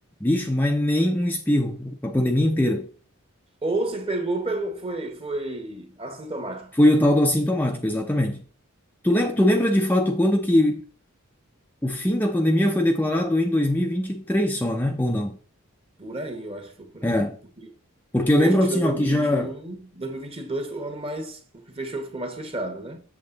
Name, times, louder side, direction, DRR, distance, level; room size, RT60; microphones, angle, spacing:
voice 1, 0.2-2.9 6.8-8.4 9.0-10.8 11.8-15.4 17.0-17.4 18.1-19.5, left 1 dB, 10° left, 0.6 m, -21 dB
voice 2, 3.6-6.7 16.0-17.3 17.6-17.7 18.4-23.0, right 2 dB, 25° right, 1.4 m, -31 dB
7.5 x 6.7 x 3.9 m
head